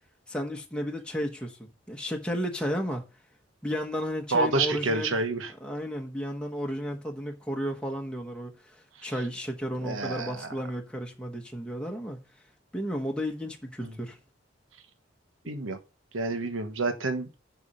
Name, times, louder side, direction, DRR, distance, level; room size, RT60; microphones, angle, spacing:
voice 1, 0.3-3.0 3.6-5.2 5.6-12.2 12.7-14.2, equal, 5° left, 1.1 m, -33 dB
voice 2, 4.3-5.5 9.0-9.1 9.8-10.5 13.8-13.9 15.5-15.8 16.1-17.3, right 3 dB, 80° right, 1.3 m, -28 dB
7.1 x 6.0 x 5.5 m
head